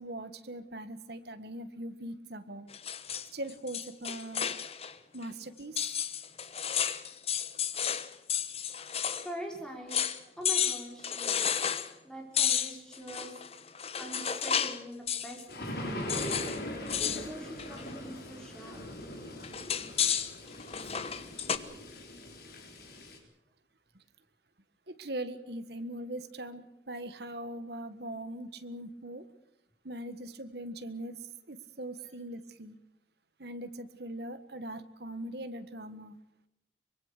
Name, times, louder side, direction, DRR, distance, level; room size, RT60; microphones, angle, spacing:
voice 1, 0.0-2.7 3.3-4.5 5.1-5.9 20.8-20.9 24.9-29.2 29.8-32.7 33.4-36.2, right 1 dB, 55° right, 10 dB, 1.6 m, -41 dB
sound 1, 2.7-4.9 5.2-5.3 5.8-9.3 9.6-9.7 9.9-10.2 10.4-11.9 12.3-14.8 15.1-15.4 16.1-16.6 16.9-17.3 17.6-17.9 19.4-21.6, left 8 dB, 30° left, 1.0 m, -32 dB
voice 2, 9.2-10.0 10.4-11.8 12.0-13.7 14.0-16.3 16.7-18.8 32.0-32.1, right 1 dB, 5° left, 0 dB, 4.9 m, -44 dB
sound 2, 15.5-23.2, left 1 dB, 55° left, 4.2 m, -41 dB
24.0 x 22.0 x 6.7 m, 0.80 s
head